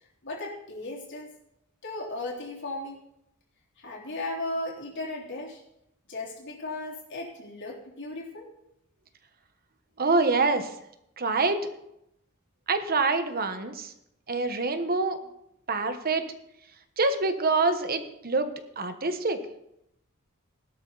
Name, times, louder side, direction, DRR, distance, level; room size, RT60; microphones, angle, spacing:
voice 1, 0.2-1.3 1.8-3.0 3.8-5.6 6.1-8.5, left 2 dB, 60° left, -2 dB, 3.5 m, -36 dB
voice 2, 10.0-10.7 11.2-11.6 12.7-13.9 14.3-15.2 15.7-16.2 17.0-19.4, right 3 dB, 45° right, 9 dB, 1.2 m, -26 dB
17.0 x 12.5 x 4.0 m, 0.80 s
head